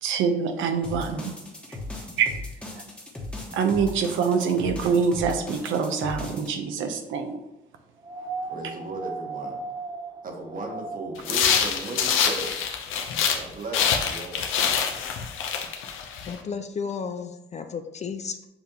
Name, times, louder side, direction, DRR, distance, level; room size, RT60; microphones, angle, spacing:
voice 1, 0.0-1.3 2.2-2.3 3.5-7.4, right 6 dB, 80° right, 6 dB, 0.5 m, -25 dB
sound 1, 0.8-6.5, left 2 dB, 5° left, 1.0 m, -37 dB
sound 2, 8.0-11.3 12.7-12.8, right 3 dB, 20° right, 0.5 m, -36 dB
voice 2, 8.4-9.7 10.2-12.7 13.3-14.5, right 2 dB, 45° right, 2 dB, 1.1 m, -36 dB
sound 3, 11.2-13.4 13.7-16.3, left 7 dB, 85° left, 0.6 m, -25 dB
voice 3, 16.3-18.5, left 6 dB, 35° left, 8 dB, 0.4 m, -33 dB
6.9 x 2.6 x 2.8 m, 0.90 s
cardioid pair, 90°, 20 cm